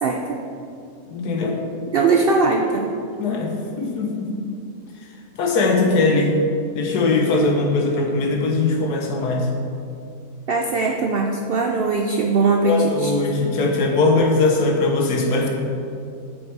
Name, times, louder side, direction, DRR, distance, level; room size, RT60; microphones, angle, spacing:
voice 1, 0.0-0.4 1.9-2.9 10.5-13.1, right 3 dB, 90° right, 1 dB, 0.5 m, -20 dB
voice 2, 1.1-1.6 3.2-4.3 5.4-6.3 6.7-9.5 12.7-15.5, left 3 dB, 85° left, 1 dB, 1.6 m, -20 dB
7.8 x 5.8 x 4.6 m, 2.5 s
omnidirectional pair, 1.6 m